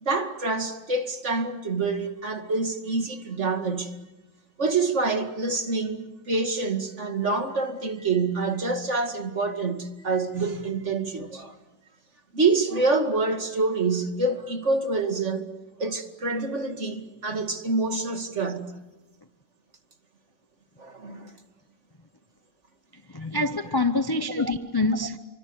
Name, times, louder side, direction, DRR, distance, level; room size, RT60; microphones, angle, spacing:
voice 1, 0.0-4.0 4.6-11.6 12.3-15.5 15.8-18.8 20.8-21.3 23.2-23.3 24.4-24.5, right 3 dB, 40° right, 2.6 m, -27 dB
voice 2, 23.1-25.2, left 2 dB, 30° left, 0.4 m, -26 dB
29.5 x 25.0 x 8.1 m
omnidirectional pair, 2.0 m